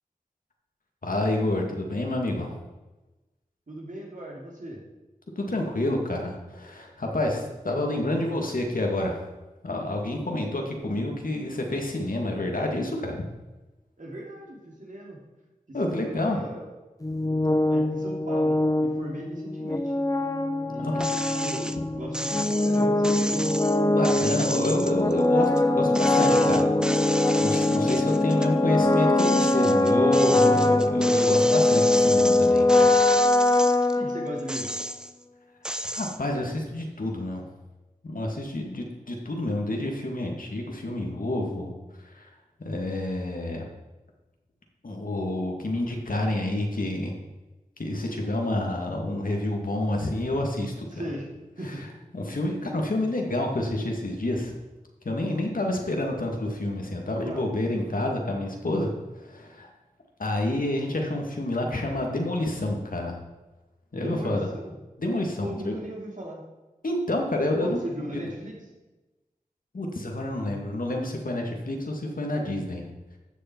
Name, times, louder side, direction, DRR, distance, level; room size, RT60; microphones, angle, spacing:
voice 1, 1.0-2.6 5.4-9.3 9.6-13.2 15.7-16.4 20.8-21.1 23.9-32.9 33.4-33.6 35.9-37.4 38.0-41.7 42.2-42.3 42.6-43.6 44.8-47.1 47.8-50.9 52.1-54.5 55.0-58.9 59.2-59.7 60.2-63.2 63.9-64.5 65.0-65.8 66.8-67.8 69.7-72.8, left 1 dB, 70° left, 1 dB, 2.0 m, -28 dB
voice 2, 3.7-4.8 14.0-15.2 15.7-16.7 17.7-19.9 20.7-23.4 33.9-34.7 50.9-51.3 51.6-51.9 52.5-52.7 57.2-57.5 63.9-64.7 65.4-66.4 67.6-68.6, right 1 dB, 60° right, -2 dB, 3.0 m, -38 dB
sound 1, 17.0-34.7, left 2 dB, 25° left, 0.9 m, -22 dB
sound 2, 21.0-21.8 22.1-25.6 25.9-28.5 28.9-34.0 34.4-35.2 35.6-36.2, equal, 5° right, 0.6 m, -33 dB
13.0 x 6.7 x 4.5 m, 1.1 s
cardioid pair, 40°, 15 cm